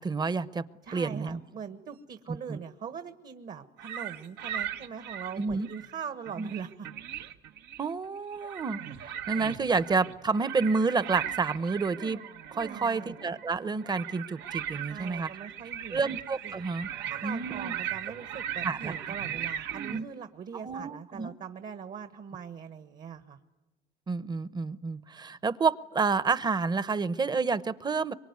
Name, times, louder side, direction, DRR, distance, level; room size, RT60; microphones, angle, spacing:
voice 1, 0.0-0.7 0.9-1.4 2.5-2.6 5.4-5.7 6.4-6.5 7.8-12.2 12.5-15.3 15.9-16.9 17.2-17.7 18.6-18.9 19.9-20.0 20.6-21.3 24.1-28.1, right 4 dB, 25° right, 16 dB, 0.8 m, -29 dB
voice 2, 0.8-6.9 12.6-13.2 14.8-16.2 16.4-16.6 17.0-23.4, right 7 dB, 50° right, 9 dB, 1.4 m, -42 dB
sound 1, 3.8-5.9 6.3-7.9 8.3-20.0, right 10 dB, 85° right, 1.3 m, -38 dB
24.0 x 23.5 x 9.5 m, 1.0 s
cardioid pair, 110°, 17 cm